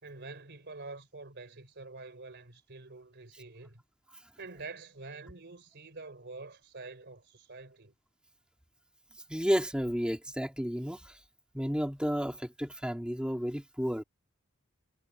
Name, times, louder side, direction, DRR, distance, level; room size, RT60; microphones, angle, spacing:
voice 1, 0.0-3.8 4.4-7.9, right 3 dB, 55° right, 3.7 m, -46 dB
voice 2, 9.3-11.2 11.5-14.0, equal, 5° right, 2.5 m, -32 dB
head